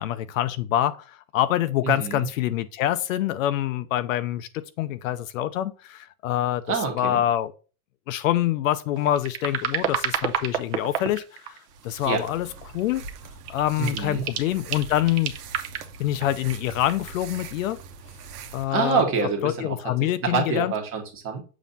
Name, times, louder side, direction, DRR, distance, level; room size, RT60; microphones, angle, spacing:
voice 1, 0.0-6.6 7.0-7.5 8.1-11.6 11.8-12.5 12.7-13.0 13.5-15.3 16.0-17.8 18.5-19.1 19.4-20.7, left 12 dB, 60° left, 0.6 m, -25 dB
voice 2, 1.8-2.3 6.7-7.2 12.0-12.2 13.8-14.3 18.7-21.4, right 5 dB, 30° right, 1.5 m, -26 dB
sound 1, 9.0-11.9 12.4-13.2 13.4-18.0 18.7-18.9, right 9 dB, 45° right, 0.9 m, -31 dB
sound 2, 11.7-18.7, right 5 dB, 85° right, 1.1 m, -43 dB
7.2 x 2.9 x 5.3 m
supercardioid pair, 155°, 45 cm